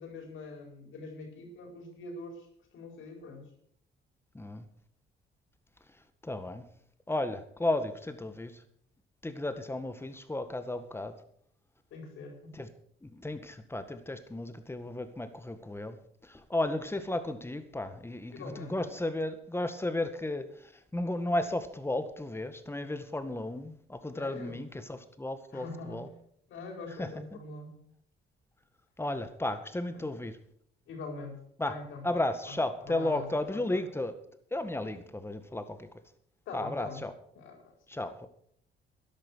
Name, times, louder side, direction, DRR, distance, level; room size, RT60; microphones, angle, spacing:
voice 1, 0.0-2.5 2.7-3.5 11.9-12.6 18.3-18.9 24.1-24.6 25.5-26.1 26.5-27.8 29.9-30.0 30.9-32.0 32.5-33.8 36.5-37.0 37.3-37.7, left 3 dB, 80° left, 3 dB, 4.7 m, -44 dB
voice 2, 4.3-4.7 6.2-6.7 7.1-8.6 9.2-11.2 12.5-12.7 13.0-26.1 27.0-27.4 29.0-30.4 31.6-31.7 32.0-34.1 34.5-35.9 36.5-37.1 37.9-38.3, left 1 dB, 10° left, 10 dB, 1.8 m, -34 dB
13.0 x 10.5 x 6.4 m, 0.66 s
cardioid pair, 90°, 20 cm